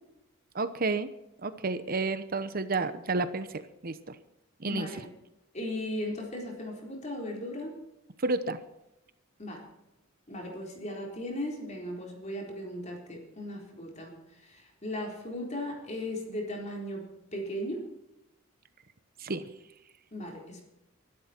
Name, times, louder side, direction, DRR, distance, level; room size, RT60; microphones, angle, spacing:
voice 1, 0.5-1.1 1.4-4.2 4.6-4.9 8.2-8.6 19.2-19.5, right 3 dB, 45° right, 11 dB, 0.9 m, -31 dB
voice 2, 4.7-5.1 5.5-7.7 9.4-9.6 10.3-14.1 14.4-17.1 17.3-17.8 20.1-20.7, left 1 dB, 35° left, 0 dB, 4.1 m, -37 dB
23.5 x 12.5 x 4.5 m, 0.90 s
head